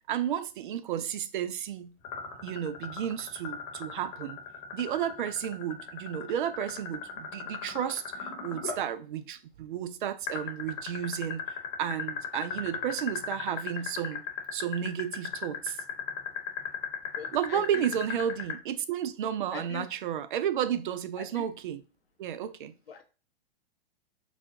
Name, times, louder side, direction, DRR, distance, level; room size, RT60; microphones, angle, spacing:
voice 1, 0.1-1.9 2.4-4.4 4.7-14.2 14.5-15.8 17.3-21.8 22.2-22.7, right 9 dB, 60° right, 0.5 m, -32 dB
sound 1, 2.0-8.8 10.3-18.5, left 8 dB, 45° left, 1.0 m, -36 dB
voice 2, 17.2-18.2 19.5-19.9 21.2-21.5 22.9-23.0, left 7 dB, 80° left, 0.9 m, -42 dB
4.0 x 2.3 x 2.8 m
figure-of-eight pair, 110°, 29 cm